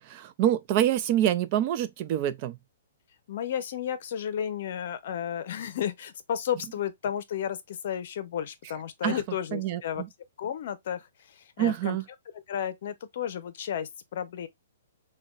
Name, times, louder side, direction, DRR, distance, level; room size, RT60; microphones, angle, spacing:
voice 1, 0.0-2.6 9.0-9.1 9.5-9.8 11.6-12.0, right 11 dB, 35° right, 0.4 m, -26 dB
voice 2, 3.3-10.0 10.4-12.0 12.3-14.5, left 9 dB, 55° left, 0.7 m, -33 dB
5.5 x 2.3 x 2.4 m
hypercardioid pair, 160°, 0 cm